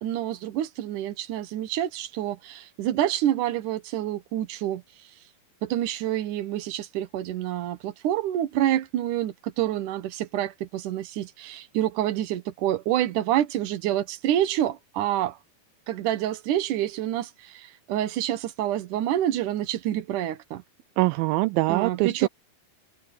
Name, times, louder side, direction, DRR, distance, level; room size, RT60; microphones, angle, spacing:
voice 1, 0.0-4.8 5.6-15.4 15.9-20.6 21.7-22.3, right 12 dB, 65° right, 2.3 m, -27 dB
voice 2, 21.0-22.3, right 20 dB, 85° right, 2.1 m, -23 dB
omnidirectional pair, 4.7 m